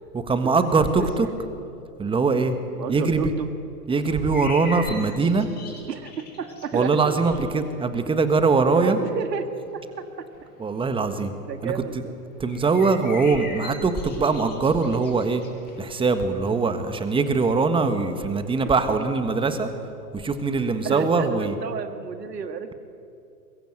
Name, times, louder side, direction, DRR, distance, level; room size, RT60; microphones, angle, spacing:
voice 1, 0.1-1.3 2.0-2.6 2.9-3.3 3.9-5.5 6.7-9.0 10.6-11.3 11.6-12.0 12.4-15.4 15.8-19.7 20.1-21.6, right 4 dB, 10° right, 9 dB, 1.5 m, -22 dB
voice 2, 2.8-3.5 5.9-7.4 8.7-9.5 9.7-10.1 11.4-12.1 18.9-19.1 20.8-22.7, right 7 dB, 80° right, 9 dB, 2.1 m, -31 dB
sound 1, 4.3-19.9, left 3 dB, 20° left, 6.4 m, -44 dB
23.5 x 21.5 x 8.0 m, 2.6 s
hypercardioid pair, 125°, 48 cm